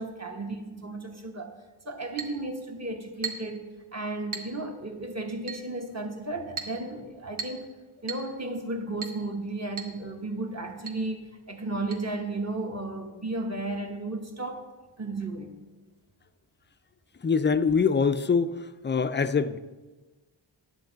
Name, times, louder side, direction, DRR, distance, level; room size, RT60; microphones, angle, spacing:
voice 1, 0.0-1.5 1.8-7.8 8.0-14.7 15.0-15.6, right 2 dB, 30° right, 3 dB, 1.1 m, -34 dB
Chink clink, 2.2-2.4 3.2-3.6 4.3-4.6 5.5-5.7 6.6-6.8 7.4-7.7 8.1-8.3 9.0-9.2 9.8-10.0 10.2-10.3 10.9-11.0 11.9-12.0, right 5 dB, 75° right, 1.1 m, -36 dB
voice 2, 17.2-18.5 18.8-19.6, left 5 dB, 25° left, 12 dB, 0.3 m, -23 dB
10.5 x 8.0 x 3.9 m, 1.2 s
wide cardioid pair, 90°, 49 cm